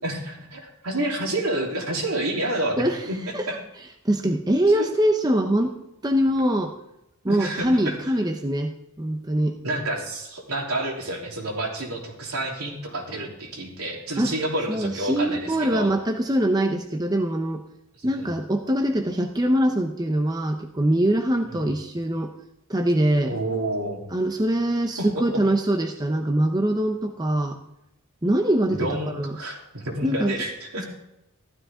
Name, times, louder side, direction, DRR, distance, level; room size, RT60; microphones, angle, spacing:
voice 1, 0.0-3.2 3.5-3.6 4.7-4.9 7.3-8.0 9.6-15.9 18.0-18.3 21.5-21.6 23.3-24.0 25.0-25.1 28.7-30.9, right 1 dB, 75° right, -1 dB, 3.4 m, -29 dB
voice 2, 4.0-5.7 6.0-6.7 7.2-9.6 14.2-14.3 14.7-17.6 18.0-22.3 22.7-23.4 24.1-27.6 28.2-29.4 30.0-30.3, right 1 dB, 15° right, 4 dB, 0.8 m, -23 dB
15.0 x 13.0 x 3.7 m, 0.88 s
head